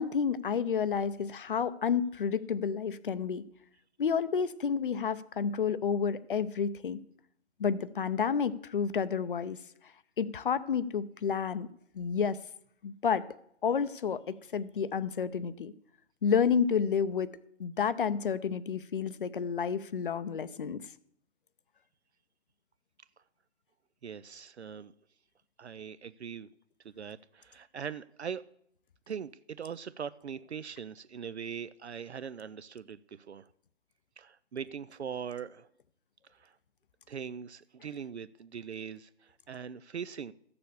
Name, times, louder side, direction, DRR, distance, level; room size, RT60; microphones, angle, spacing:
voice 1, 0.0-3.4 4.0-7.0 7.6-9.6 10.2-11.7 11.9-12.4 12.8-13.3 13.6-15.7 16.2-17.3 17.6-20.8, left 6 dB, 45° left, 15 dB, 0.7 m, -30 dB
voice 2, 24.0-24.9 25.6-26.5 26.8-28.4 29.1-33.5 34.2-35.7 36.3-36.5 37.1-40.3, right 7 dB, 65° right, 15 dB, 0.6 m, -41 dB
13.5 x 6.9 x 6.8 m, 0.71 s
figure-of-eight pair, 140°, 36 cm